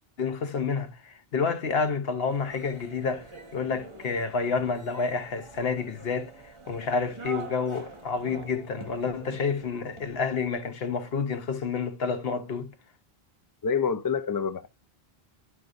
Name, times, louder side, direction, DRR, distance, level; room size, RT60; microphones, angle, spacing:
voice 1, 0.2-12.7, left 5 dB, 70° left, 1.1 m, -29 dB
sound 1, 2.3-10.5, right 3 dB, 30° right, 1.6 m, -45 dB
voice 2, 13.6-14.7, left 6 dB, 30° left, 0.4 m, -27 dB
11.0 x 4.6 x 2.5 m
omnidirectional pair, 1.0 m